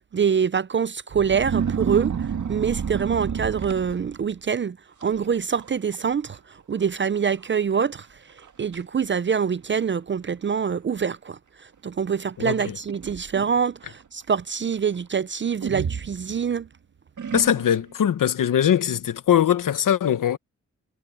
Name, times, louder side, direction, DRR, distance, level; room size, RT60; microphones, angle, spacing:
voice 1, 0.1-4.8 5.0-16.7, right 7 dB, 40° right, 0.5 m, -25 dB
sound 1, 1.1-4.4 5.0-5.3 5.6-6.0 6.3-6.4 7.1-7.2 7.8-7.9 8.4-8.8 9.6-9.7 12.6-13.6 15.6-16.7 17.2-17.9, right 7 dB, 65° right, 2.1 m, -30 dB
voice 2, 17.3-20.4, left 9 dB, 80° left, 1.1 m, -21 dB
cardioid pair, 75°, 31 cm